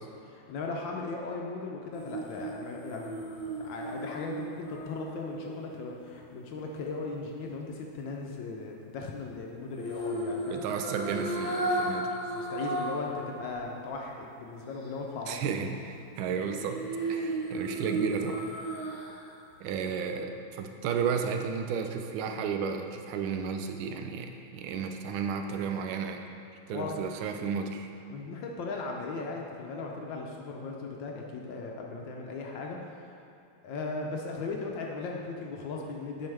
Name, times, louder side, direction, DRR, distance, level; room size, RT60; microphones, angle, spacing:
voice 1, 0.3-10.6 12.3-15.4 26.7-27.0 28.1-33.2 33.6-36.3, left 3 dB, 70° left, 0 dB, 1.2 m, -37 dB
sound 1, 1.9-6.2 9.7-13.1 13.5-13.6 16.4-19.3 19.7-19.8, right 2 dB, 35° left, 1.6 m, -34 dB
voice 2, 10.5-12.2 15.3-16.8 17.1-18.5 19.6-26.2 26.7-27.9, right 6 dB, 75° right, 5 dB, 1.4 m, -33 dB
9.2 x 5.3 x 3.3 m, 2.7 s
omnidirectional pair, 2.4 m